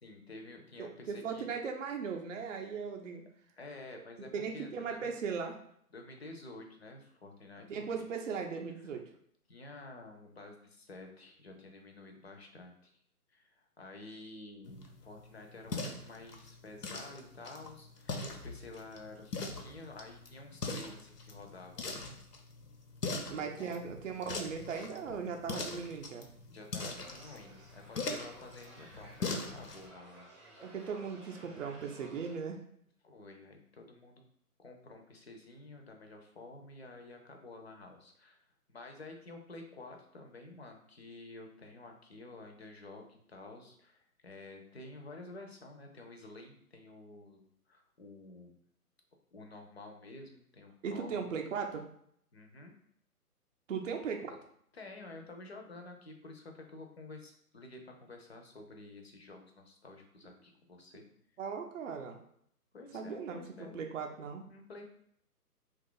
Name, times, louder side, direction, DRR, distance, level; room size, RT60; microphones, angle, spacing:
voice 1, 0.0-1.5 3.6-5.1 5.9-7.9 8.8-9.0 9.5-12.9 13.3-21.8 23.2-23.7 26.5-30.6 33.0-34.2 34.6-38.4 38.7-47.4 47.7-48.6 49.3-51.2 52.3-52.7 54.7-61.0 62.7-63.7 64.5-64.9, left 2 dB, 45° left, 3 dB, 0.5 m, -50 dB
voice 2, 0.8-3.2 4.3-5.5 7.7-9.0 23.3-26.3 30.6-32.6 50.8-51.8 53.7-54.3 61.4-62.2 62.9-64.4, right 6 dB, 55° right, 3 dB, 0.5 m, -38 dB
sound 1, 14.6-29.9, left 3 dB, 90° left, 0.8 m, -42 dB
sound 2, 26.9-32.4, right 1 dB, 20° right, 0.8 m, -56 dB
2.7 x 2.4 x 3.8 m, 0.68 s
figure-of-eight pair, 145°, 46 cm